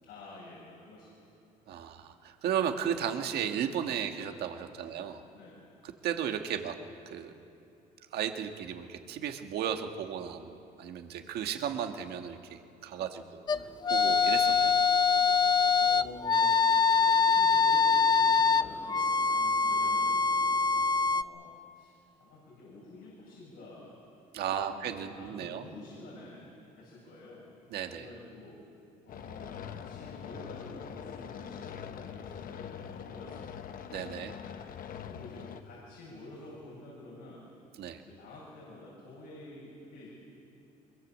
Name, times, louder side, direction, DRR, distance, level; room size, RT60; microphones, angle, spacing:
voice 1, 0.0-1.2 1.6-2.0 4.8-5.6 13.0-13.4 15.8-20.5 21.1-24.1 24.5-27.5 27.9-28.6 29.0-33.9 34.4-34.7 35.0-37.4 37.9-40.1, left 2 dB, 85° left, -5 dB, 7.4 m, -49 dB
voice 2, 1.7-5.2 5.8-6.8 7.0-7.3 8.1-13.4 13.9-14.7 24.3-25.6 27.7-28.1 33.9-34.3 37.8-38.0, right 9 dB, 70° right, 6 dB, 1.7 m, -35 dB
sound 1, 13.5-21.2, left 5 dB, 25° left, 0.6 m, -24 dB
sound 2, 29.1-35.6, left 8 dB, 55° left, 1.1 m, -43 dB
24.0 x 22.5 x 7.5 m, 2.8 s
cardioid pair, 110°, 17 cm